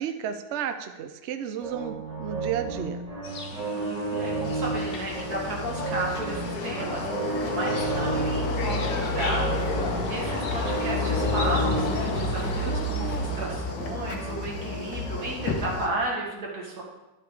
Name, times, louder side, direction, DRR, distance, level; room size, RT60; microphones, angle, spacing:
voice 1, 0.0-3.0 7.4-7.6, right 9 dB, 75° right, 8 dB, 0.6 m, -32 dB
sound 1, 1.6-15.6, right 3 dB, 25° right, 1.4 m, -33 dB
sound 2, 3.2-13.5, left 3 dB, 45° left, 0.8 m, -40 dB
voice 2, 3.7-16.8, right 2 dB, 55° right, -2 dB, 2.5 m, -33 dB
sound 3, 4.4-15.9, left 3 dB, 70° left, 1.8 m, -30 dB
12.0 x 5.7 x 4.8 m, 1.1 s
omnidirectional pair, 2.0 m